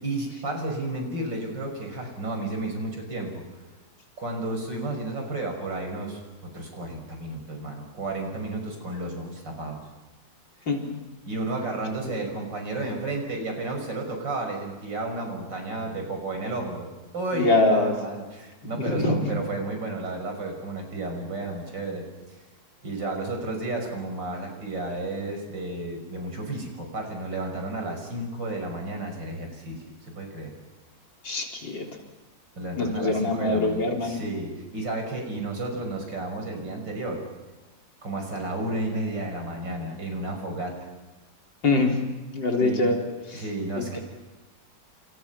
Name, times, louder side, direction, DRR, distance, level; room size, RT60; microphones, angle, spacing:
voice 1, 0.0-3.4 4.2-9.8 11.3-16.9 17.1-22.1 22.8-30.5 32.6-37.2 38.0-40.9 42.6-42.9 43.3-44.0, right 2 dB, 75° right, 3 dB, 6.5 m, -32 dB
voice 2, 17.3-17.9 18.7-19.1 31.2-31.8 32.8-34.2 41.6-42.0 42.3-43.0 43.3-43.4 43.8-44.0, left 2 dB, 80° left, 1 dB, 4.5 m, -24 dB
29.5 x 27.5 x 5.9 m, 1.3 s
omnidirectional pair, 2.0 m